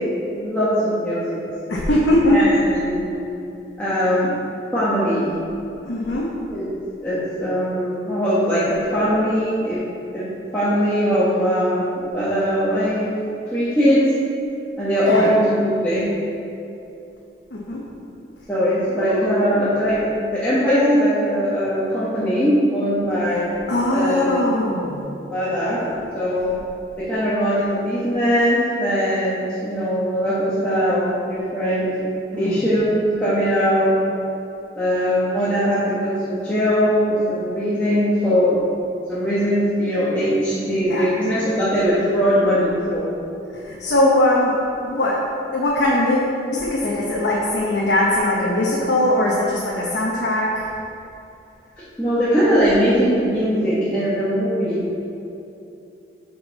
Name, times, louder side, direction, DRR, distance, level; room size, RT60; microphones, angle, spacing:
voice 1, 0.3-1.4 2.3-3.1 3.8-4.3 4.7-5.3 6.5-6.6 7.0-9.8 10.1-13.1 13.5-14.0 14.8-16.1 18.5-20.0 20.3-23.5 23.9-24.5 25.3-25.8 26.1-26.5 27.0-31.9 32.4-34.0 34.7-38.6 39.1-43.1 52.0-54.8, equal, 10° left, -12 dB, 1.1 m, -20 dB
voice 2, 1.7-2.4 5.8-6.3 15.1-15.3 17.5-17.8 18.9-19.7 23.7-25.0 32.3-32.6 40.9-41.1 43.6-45.2 45.5-50.7, left 1 dB, 75° left, -5 dB, 0.9 m, -20 dB
8.0 x 5.3 x 4.0 m, 2.8 s
head